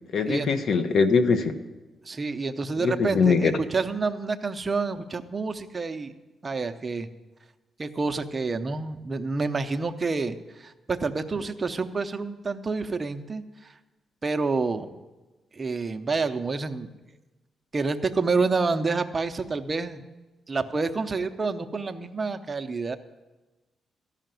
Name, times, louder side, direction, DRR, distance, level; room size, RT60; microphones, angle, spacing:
voice 1, 0.1-1.6 2.8-3.5, left 5 dB, 60° left, 9 dB, 0.9 m, -22 dB
voice 2, 2.1-6.1 6.4-7.1 7.8-13.7 14.2-14.9 15.5-16.9 17.7-20.0 20.5-23.0, right 4 dB, 25° right, 7 dB, 0.6 m, -28 dB
13.5 x 5.8 x 9.0 m, 1.2 s
cardioid pair, 135°, 0 cm